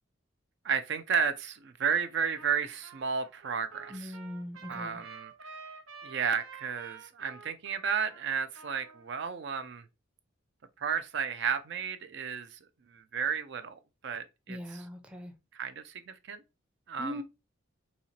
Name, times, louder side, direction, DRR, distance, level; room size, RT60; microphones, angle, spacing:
voice 1, 0.6-4.1 4.7-5.3 6.0-9.8 10.8-12.6 12.9-14.8 15.5-16.4 16.9-17.2, right 6 dB, 60° right, 0.4 m, -33 dB
Trumpet, 2.4-2.6 2.8-9.0, right 5 dB, 90° right, 1.0 m, -50 dB
voice 2, 3.9-5.0 14.5-15.3 17.0-17.2, equal, 5° right, 0.5 m, -40 dB
4.2 x 2.8 x 2.8 m
head